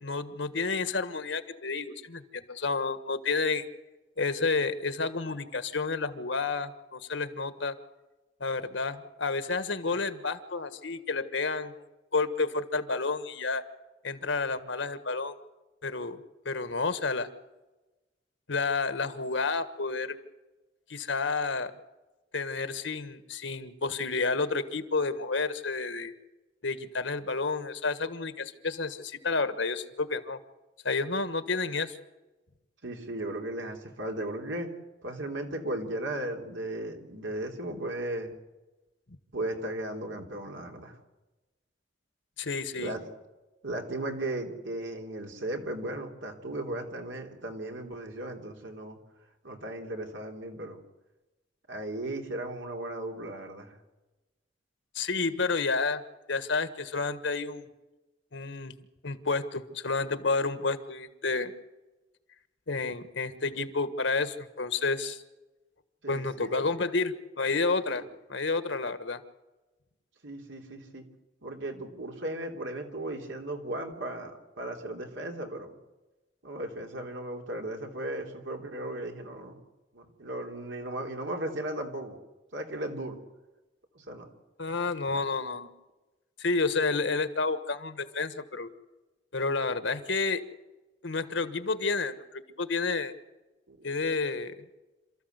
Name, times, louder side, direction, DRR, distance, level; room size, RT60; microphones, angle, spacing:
voice 1, 0.0-3.6 4.2-7.8 8.4-11.9 12.1-13.6 14.0-15.4 15.8-16.2 16.4-17.3 18.5-20.2 20.9-21.7 22.3-26.1 26.6-30.4 30.8-32.0 42.4-43.0 54.9-56.0 56.3-57.7 58.3-58.8 59.0-61.5 62.7-65.2 66.1-68.0 68.3-69.2 84.6-85.7 86.4-88.7 89.3-90.4 91.0-93.1 93.8-94.5, left 4 dB, 80° left, 11 dB, 1.5 m, -30 dB
voice 2, 32.8-34.7 35.0-38.3 39.3-41.0 42.8-43.0 43.6-49.0 49.4-50.8 51.7-53.7 66.0-66.6 67.9-68.1 70.2-71.0 71.4-74.3 74.6-75.7 76.4-79.6 79.9-82.1 82.5-83.2 83.9-84.3 85.1-85.2 93.7-93.9, right 1 dB, 90° right, 2 dB, 3.2 m, -36 dB
28.0 x 14.0 x 8.1 m, 1.1 s
head